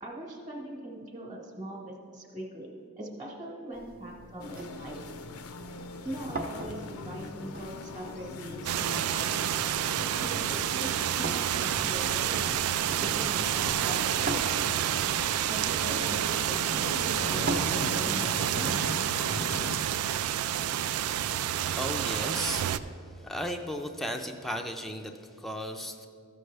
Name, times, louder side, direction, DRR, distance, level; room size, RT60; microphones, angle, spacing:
voice 1, 0.0-5.0 6.0-9.5 10.2-10.9 11.2-14.4 15.5-18.8, right 1 dB, 25° right, -2 dB, 1.1 m, -41 dB
sound 1, 3.7-17.6, right 2 dB, 40° right, 0.7 m, -42 dB
sound 2, 4.4-19.7, left 3 dB, 75° left, 0.5 m, -41 dB
sound 3, 8.6-22.8, right 10 dB, 75° right, 0.3 m, -29 dB
voice 2, 21.4-22.7 23.1-26.1, equal, ahead, 3 dB, 0.4 m, -35 dB
14.0 x 6.5 x 3.3 m, 2.3 s
head